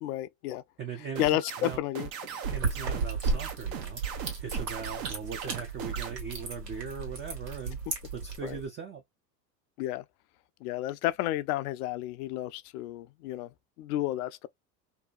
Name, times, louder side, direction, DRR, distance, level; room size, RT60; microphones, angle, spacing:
voice 1, 0.0-0.6 1.2-2.1 8.4-8.6 9.8-10.0 10.6-13.5 13.8-14.5, left 14 dB, 70° left, 0.5 m, -31 dB
voice 2, 0.8-1.8 2.5-4.0 4.4-7.8 8.1-9.0, right 6 dB, 25° right, 0.5 m, -39 dB
sound 1, 1.2-6.1, right 8 dB, 60° right, 0.9 m, -38 dB
sound 2, 2.4-8.7, right 4 dB, 80° right, 1.5 m, -34 dB
2.7 x 2.2 x 2.3 m
hypercardioid pair, 85°, 48 cm